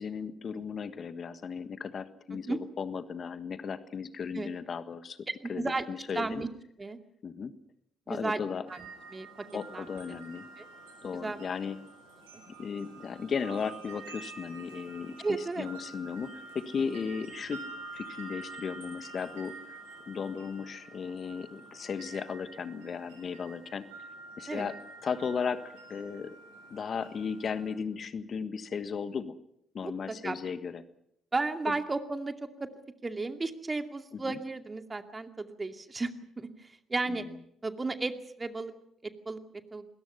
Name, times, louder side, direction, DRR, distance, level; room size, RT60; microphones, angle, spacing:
voice 1, 0.0-5.2 5.5-6.4 7.2-7.5 8.1-8.6 9.5-10.5 11.0-11.8 12.5-17.6 17.9-19.8 20.1-23.9 24.4-26.4 26.7-29.3 29.7-30.8 31.7-31.8 34.1-34.4 37.1-37.3, left 6 dB, 45° left, 12 dB, 1.5 m, -36 dB
voice 2, 5.4-5.8 6.1-6.5 6.8-7.0 8.1-8.4 8.7-8.9 9.1-9.5 9.7-10.2 10.6-10.7 11.1-11.4 12.3-12.4 15.2-15.7 24.5-24.7 29.8-30.4 31.3-32.7 33.0-36.1 36.4-37.2 37.6-38.7 39.0-39.4 39.7-39.9, right 3 dB, 25° right, 7 dB, 2.4 m, -34 dB
sound 1, 8.7-27.7, right 3 dB, 80° right, 7.9 m, -48 dB
27.0 x 21.5 x 5.7 m, 0.74 s
figure-of-eight pair, 45°, 0 cm